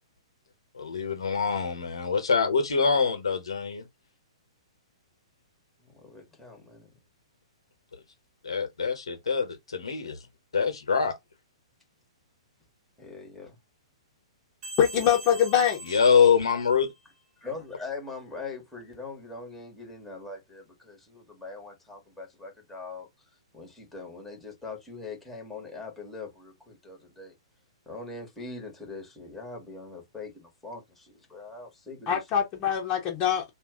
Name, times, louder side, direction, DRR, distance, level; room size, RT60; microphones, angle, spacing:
voice 1, 0.7-3.8 7.9-8.0 8.4-10.2 10.5-11.1 15.9-16.9, left 6 dB, 65° left, 1.1 m, -24 dB
voice 2, 5.8-6.9 13.0-13.6 17.4-23.1 23.5-27.3 27.9-32.2, left 3 dB, 5° left, 1.3 m, -42 dB
sound 1, 14.6-17.2, right 2 dB, 35° right, 1.1 m, -43 dB
voice 3, 14.8-16.0 32.1-33.4, left 9 dB, 25° left, 1.0 m, -24 dB
2.6 x 2.5 x 3.7 m
figure-of-eight pair, 115°, 3 cm